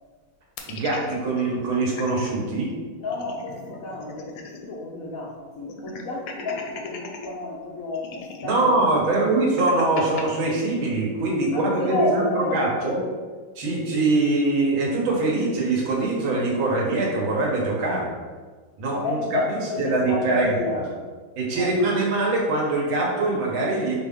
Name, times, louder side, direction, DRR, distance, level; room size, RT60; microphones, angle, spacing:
sound 1, 0.6-2.3 2.7-2.8 3.0-4.8 5.1-5.2 5.7-7.3 7.9-10.2, left 5 dB, 75° left, 1.1 m, -39 dB
voice 1, 0.7-2.7 8.4-13.0 13.6-18.1 18.8-19.4 19.8-20.5 21.4-24.0, right 2 dB, 75° right, -3 dB, 1.8 m, -23 dB
voice 2, 3.0-9.3 11.5-12.9 13.9-14.1 18.9-20.9 21.5-22.0, left 2 dB, 90° left, -4 dB, 0.7 m, -31 dB
5.1 x 2.7 x 3.5 m, 1.5 s
omnidirectional pair, 2.3 m